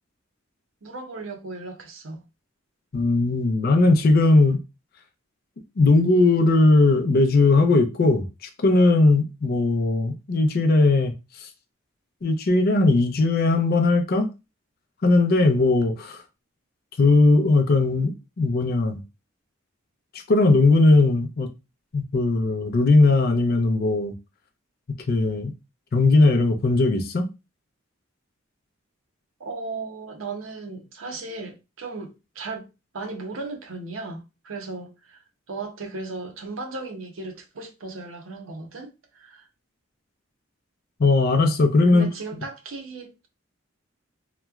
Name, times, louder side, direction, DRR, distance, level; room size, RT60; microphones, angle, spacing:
voice 1, 0.8-2.2 29.4-32.7 32.9-35.2 35.5-39.5 41.9-43.3, right 3 dB, 85° right, 0.7 m, -36 dB
voice 2, 2.9-4.6 5.8-8.2 8.6-11.1 12.2-14.3 15.0-16.2 17.0-19.0 20.3-21.5 21.9-24.1 25.1-25.5 25.9-27.3 41.0-42.1, left 2 dB, 50° left, 0.4 m, -18 dB
3.0 x 2.1 x 2.3 m
head